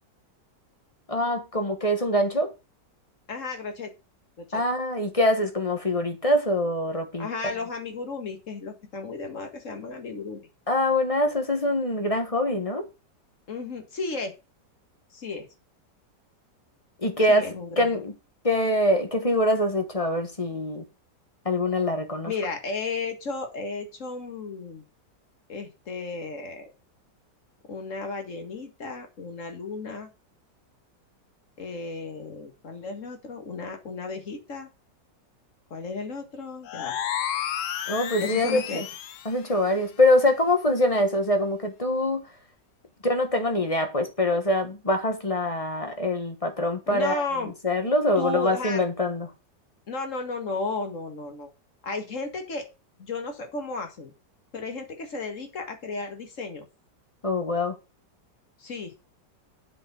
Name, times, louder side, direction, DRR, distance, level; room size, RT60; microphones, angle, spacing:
voice 1, 1.1-2.5 4.5-7.3 10.7-12.9 17.0-18.1 18.4-20.9 21.4-22.3 37.9-38.8 39.2-42.2 43.0-47.2 47.6-49.3 57.2-57.8, left 1 dB, 20° left, 1.2 m, -24 dB
voice 2, 3.3-3.9 4.4-4.6 7.2-10.5 13.5-14.3 15.1-15.5 17.3-17.9 22.3-24.8 25.5-26.7 27.7-30.1 31.6-34.7 35.7-37.0 38.2-38.8 46.9-47.5 48.2-48.8 49.9-51.5 51.8-52.7 53.0-54.1 54.5-56.7 58.6-58.9, left 3 dB, 45° left, 2.1 m, -34 dB
sound 1, 36.6-39.4, left 10 dB, 65° left, 0.8 m, -31 dB
7.8 x 5.0 x 6.9 m
omnidirectional pair, 1.9 m